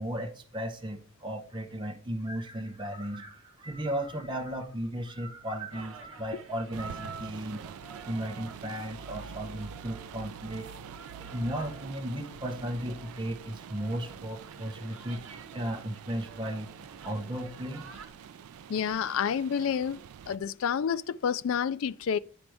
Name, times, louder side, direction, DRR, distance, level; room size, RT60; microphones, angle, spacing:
voice 1, 0.0-7.7 8.0-10.7 11.2-15.2 15.5-16.7 17.0-17.8, equal, 20° right, 0.9 m, -35 dB
sound 1, 5.7-18.1, right 4 dB, 65° right, 1.1 m, -49 dB
sound 2, 6.7-20.4, right 8 dB, 80° right, 0.3 m, -46 dB
voice 2, 18.7-22.2, left 7 dB, 65° left, 0.4 m, -29 dB
9.2 x 5.1 x 4.8 m
head